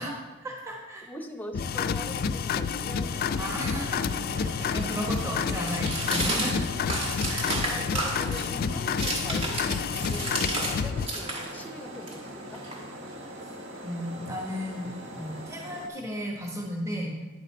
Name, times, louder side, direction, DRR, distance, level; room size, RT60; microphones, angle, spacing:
voice 1, 0.0-1.1 3.4-6.7 7.0-7.5 13.8-17.1, equal, 15° right, -2 dB, 1.4 m, -35 dB
voice 2, 1.0-3.2 7.4-12.7, left 1 dB, 10° left, 6 dB, 0.7 m, -42 dB
sound 1, 1.5-11.1, left 6 dB, 45° left, 0.3 m, -29 dB
sound 2, 3.1-15.9, right 1 dB, 65° right, 1.3 m, -42 dB
sound 3, 4.3-10.8 11.0-13.2, right 2 dB, 30° right, 1.8 m, -33 dB
9.9 x 6.7 x 4.3 m, 1.2 s
head